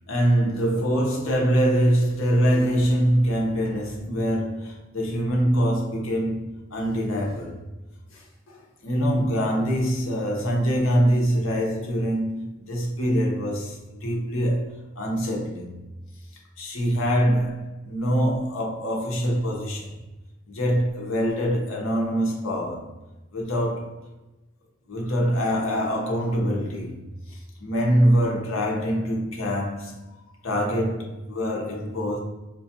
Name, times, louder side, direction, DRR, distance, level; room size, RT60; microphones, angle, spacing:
voice 1, 0.1-7.7 8.1-15.7 16.6-20.0 20.5-22.9 23.3-24.0 24.9-27.0 27.3-32.2, equal, 75° left, 0.8 m, -24 dB
4.4 x 2.3 x 2.7 m
head